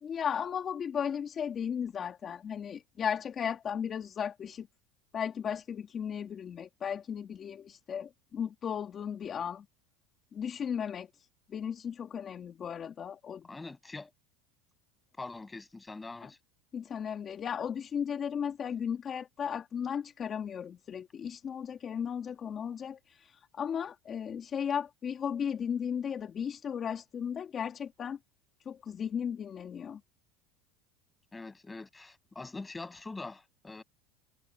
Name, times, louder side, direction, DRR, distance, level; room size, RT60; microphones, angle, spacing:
voice 1, 0.0-4.7 5.1-9.7 10.3-13.5 16.2-16.3 16.7-28.2 28.6-30.0, left 8 dB, 25° left, 3.0 m, -35 dB
voice 2, 13.5-14.1 15.2-16.4 31.3-33.8, left 3 dB, 10° left, 8.0 m, -43 dB
supercardioid pair, 145°, 0 cm